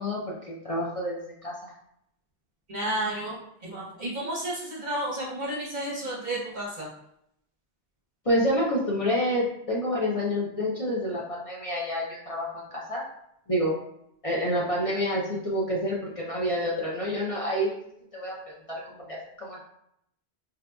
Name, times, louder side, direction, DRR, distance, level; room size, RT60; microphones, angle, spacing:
voice 1, 0.0-1.7 8.2-13.0 13.5-13.7 14.2-17.7 18.1-19.6, equal, 40° left, -5 dB, 0.6 m, -28 dB
voice 2, 2.7-6.9, right 1 dB, 50° right, -4 dB, 0.8 m, -32 dB
4.1 x 2.7 x 2.2 m, 0.75 s
omnidirectional pair, 1.1 m